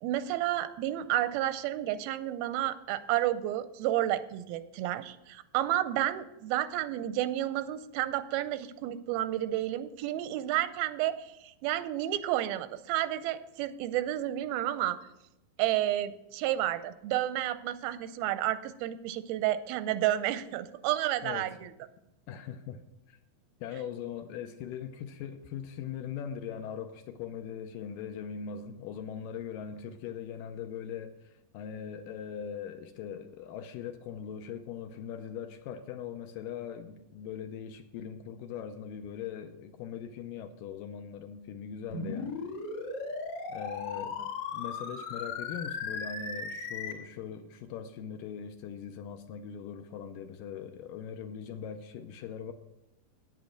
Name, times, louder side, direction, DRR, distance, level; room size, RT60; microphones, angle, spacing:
voice 1, 0.0-15.0 15.6-21.7 44.0-44.1, right 13 dB, 90° right, 13 dB, 2.5 m, -31 dB
voice 2, 21.2-21.6 22.3-22.8 23.1-23.2 23.6-42.4 43.5-44.2 44.5-52.5, left 8 dB, 80° left, 8 dB, 2.1 m, -40 dB
sound 1, 41.9-46.9, left 4 dB, 55° left, 2.7 m, -37 dB
9.3 x 8.4 x 6.4 m, 0.87 s
omnidirectional pair, 4.3 m